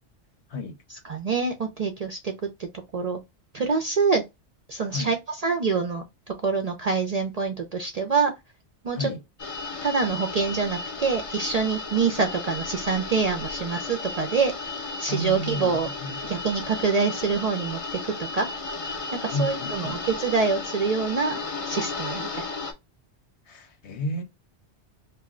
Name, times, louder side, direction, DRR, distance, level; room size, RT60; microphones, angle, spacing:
voice 1, 1.1-2.3 2.9-3.2 3.5-4.2 4.7-6.0 6.4-8.3 8.8-9.1 9.8-14.5 15.0-15.9 16.3-18.5 19.2-21.4 21.6-22.5, right 5 dB, 55° right, 0.4 m, -25 dB
voice 2, 8.9-9.2 15.1-16.3 19.3-20.0 23.5-24.2, left 1 dB, 75° left, 1.1 m, -32 dB
sound 1, 9.4-22.7, left 3 dB, 35° left, 0.6 m, -34 dB
2.6 x 2.1 x 3.6 m
omnidirectional pair, 1.2 m